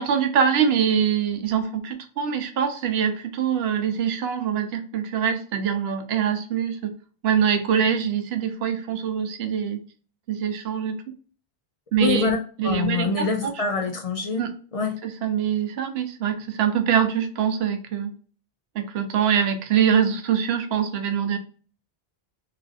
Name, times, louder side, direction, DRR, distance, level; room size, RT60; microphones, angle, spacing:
voice 1, 0.0-6.9 7.2-9.8 10.3-10.9 11.9-12.3 12.6-13.5 14.4-14.5 15.0-18.1 18.7-21.4, right 8 dB, 90° right, 7 dB, 0.8 m, -24 dB
voice 2, 12.0-15.0, left 4 dB, 55° left, 3 dB, 0.4 m, -26 dB
3.0 x 2.5 x 2.3 m, 0.40 s
omnidirectional pair, 1.0 m